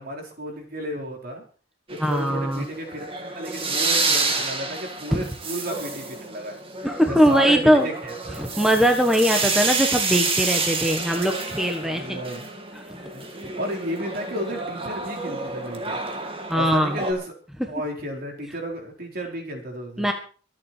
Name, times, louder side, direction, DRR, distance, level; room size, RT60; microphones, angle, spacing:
voice 1, 0.0-1.4 1.9-3.1 3.3-6.6 7.1-8.5 9.4-9.7 11.9-12.5 13.1-13.2 13.6-16.0 16.6-17.3 17.7-20.1, equal, 50° right, 1 dB, 4.6 m, -32 dB
sound 1, 1.9-17.1, right 4 dB, 30° right, 2.3 m, -29 dB
voice 2, 2.0-2.6 5.1-5.3 6.8-7.9 8.4-12.2 12.7-13.0 13.4-13.5 16.5-17.0 17.6-17.7 20.0-20.1, equal, ahead, 3 dB, 1.4 m, -21 dB
24.5 x 8.7 x 4.5 m, 0.41 s
head